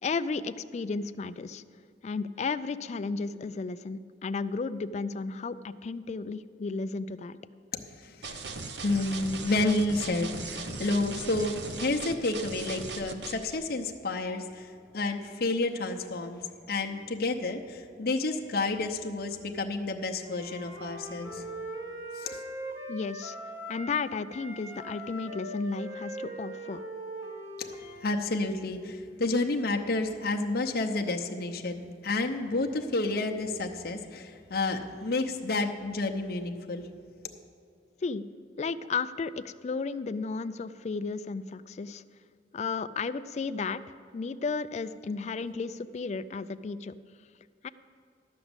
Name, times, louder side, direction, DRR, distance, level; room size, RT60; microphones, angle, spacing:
voice 1, 0.0-1.6 2.0-7.4 22.9-23.4 23.7-26.8 38.0-38.2 38.6-42.0 42.5-43.8 44.1-46.9 47.6-47.7, left 4 dB, 35° left, 13 dB, 0.3 m, -33 dB
voice 2, 7.7-8.5 8.8-16.4 16.7-21.5 22.1-22.4 27.6-36.9, left 2 dB, 55° left, 2 dB, 0.7 m, -30 dB
sound 1, 8.2-13.6, right 3 dB, 65° right, 0.7 m, -38 dB
Wind instrument woodwind instrument, 20.2-24.0 24.3-28.2, right 1 dB, 15° right, 1.1 m, -41 dB
12.5 x 6.0 x 8.0 m, 2.3 s
head